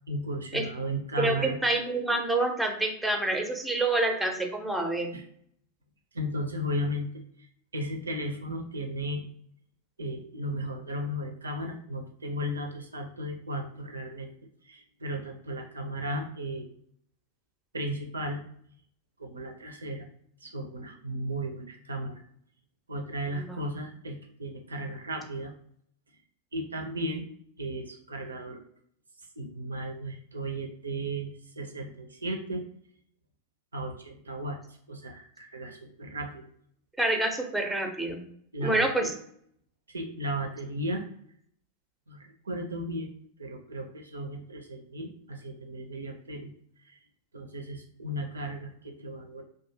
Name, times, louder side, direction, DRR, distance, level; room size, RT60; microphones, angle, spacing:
voice 1, 0.1-1.6 5.1-5.3 6.1-7.1 7.7-9.2 10.0-14.3 14.6-16.7 17.7-18.4 19.2-20.1 20.4-22.2 22.9-25.5 26.5-27.2 27.6-28.6 29.4-32.6 33.7-34.6 34.9-36.4 38.5-39.1 39.9-41.0 42.1-43.1 43.4-46.5 46.9-47.0 47.3-49.4, right 1 dB, 75° right, 4 dB, 0.4 m, -35 dB
voice 2, 1.2-5.1 23.3-23.6 37.0-38.2 38.6-39.1, right 2 dB, 5° right, 3 dB, 0.5 m, -27 dB
2.5 x 2.3 x 2.6 m, 0.66 s
figure-of-eight pair, 90°, 0 cm